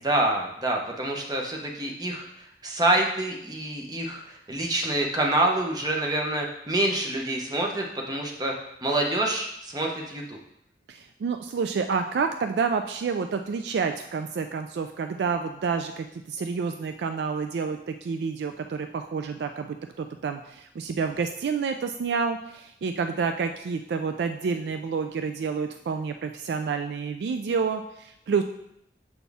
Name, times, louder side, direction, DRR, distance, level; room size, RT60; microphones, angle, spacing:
voice 1, 0.0-2.2 2.6-8.5 8.8-10.4, right 1 dB, 20° right, 0 dB, 0.7 m, -26 dB
voice 2, 10.9-28.4, right 5 dB, 75° right, 7 dB, 0.3 m, -29 dB
6.9 x 4.2 x 3.4 m, 0.78 s
head